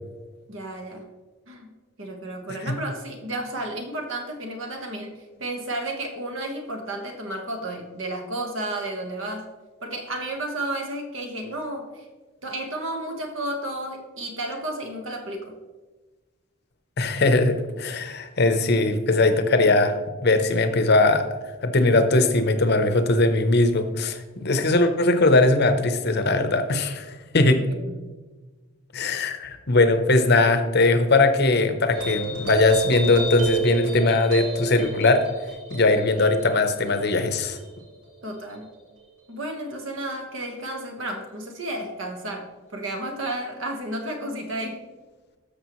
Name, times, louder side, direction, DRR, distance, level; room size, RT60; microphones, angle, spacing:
voice 1, 0.5-1.1 1.5-1.7 2.0-9.5 9.8-12.1 12.4-15.5 24.5-24.6 27.4-27.9 38.2-38.7 39.3-44.8, right 1 dB, 60° right, 3 dB, 1.3 m, -32 dB
voice 2, 17.0-21.3 21.6-27.7 28.9-35.2 35.7-37.6, left 2 dB, 50° left, 8 dB, 0.7 m, -20 dB
sound 1, 31.9-38.7, right 3 dB, 80° right, 2.7 m, -31 dB
13.0 x 6.5 x 3.1 m, 1.3 s
head